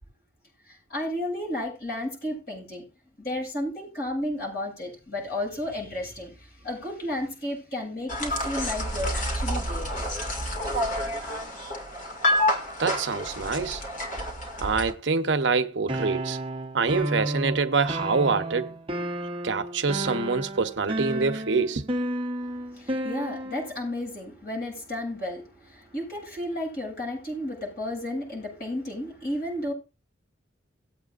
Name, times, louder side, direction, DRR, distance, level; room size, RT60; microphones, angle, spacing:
voice 1, 0.7-2.8 3.2-9.9 22.4-29.7, left 1 dB, 55° left, 7.8 m, -33 dB
sound 1, 8.1-14.9, left 1 dB, 40° left, 2.2 m, -29 dB
voice 2, 12.8-13.8 14.6-16.4 16.7-19.0 19.4-21.9, right 4 dB, 70° right, 0.8 m, -26 dB
sound 2, 15.9-23.8, right 1 dB, 25° right, 0.9 m, -32 dB
19.0 x 8.2 x 2.5 m
head